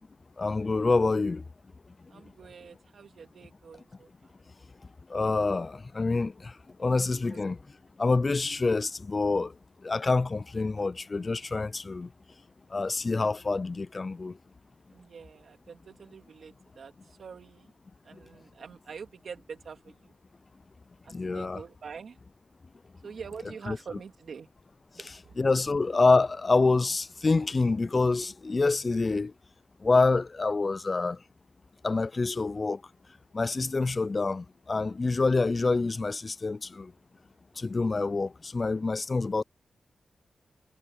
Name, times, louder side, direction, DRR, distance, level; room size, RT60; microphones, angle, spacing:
voice 1, 0.4-1.4 5.1-6.5 6.8-7.6 8.0-9.5 9.8-12.1 12.7-14.3 21.1-21.6 23.7-23.8 25.4-29.3 29.8-31.2 31.8-32.8 33.3-36.9 37.6-39.4, left 3 dB, 45° left, 0.3 m, -26 dB
voice 2, 2.1-4.3 7.2-7.4 14.9-17.7 18.0-20.1 21.0-22.2 23.0-24.5 25.0-25.3, right 6 dB, 75° right, 2.5 m, -45 dB
cardioid pair, 55°, 0 cm